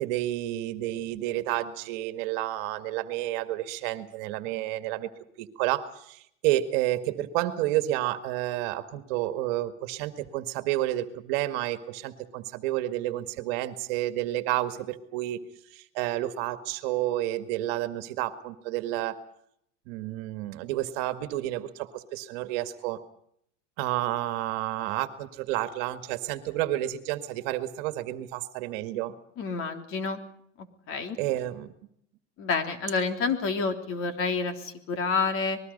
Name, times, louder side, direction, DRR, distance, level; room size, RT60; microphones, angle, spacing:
voice 1, 0.0-5.1 5.4-15.4 15.7-19.2 19.9-23.0 23.8-29.1 31.2-31.7, right 15 dB, 55° right, 10 dB, 2.1 m, -30 dB
voice 2, 29.4-30.2 30.6-31.2 32.4-35.6, left 4 dB, 35° left, 7 dB, 3.4 m, -29 dB
26.5 x 21.0 x 5.5 m, 0.71 s
supercardioid pair, 140°, 36 cm